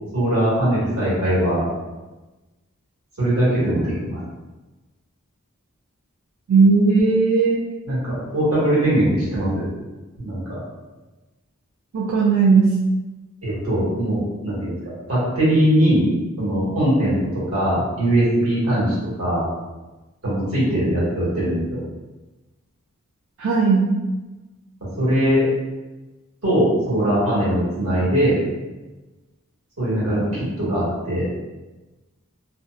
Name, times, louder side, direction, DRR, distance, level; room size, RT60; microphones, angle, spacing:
voice 1, 0.1-1.6 3.2-4.2 7.8-9.7 10.2-10.6 13.4-14.7 15.1-16.1 16.4-19.4 20.2-21.8 25.0-25.5 26.4-28.4 29.8-31.2, right 1 dB, 90° right, -9 dB, 1.4 m, -21 dB
voice 2, 6.5-7.6 11.9-12.7 23.4-23.9, right 4 dB, 65° right, -4 dB, 0.3 m, -16 dB
2.6 x 2.0 x 2.3 m, 1.1 s
head